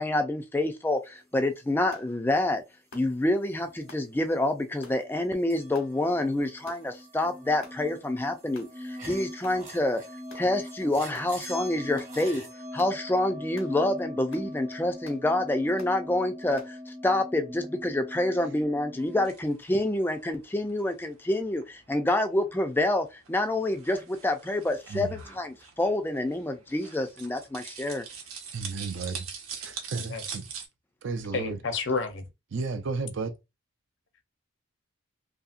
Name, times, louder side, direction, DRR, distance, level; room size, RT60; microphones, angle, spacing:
voice 1, 0.0-2.6 2.9-10.0 10.3-12.4 12.7-28.0, left 1 dB, 10° left, 0.3 m, -27 dB
sound 1, 1.9-2.1 2.9-3.1 3.9-4.1 4.8-5.0 5.7-5.9 6.6-6.9 7.6-7.8 8.5-8.7 9.4-9.6 10.3-10.5 11.1-11.3 12.0-12.1 12.8-13.0 13.5-13.8 14.3-14.5 15.0-15.2 15.8-16.0 16.6-16.7, left 2 dB, 85° left, 1.1 m, -49 dB
sound 2, 3.6-4.5 4.7-19.3, equal, 35° right, 0.9 m, -42 dB
sound 3, 19.0-30.7, right 6 dB, 90° right, 0.9 m, -44 dB
voice 2, 24.9-25.2 28.5-29.3 29.6-30.5 31.0-31.6 32.5-33.3, right 4 dB, 65° right, 0.5 m, -33 dB
voice 3, 31.3-32.2, left 4 dB, 65° left, 0.6 m, -30 dB
2.8 x 2.7 x 2.4 m
head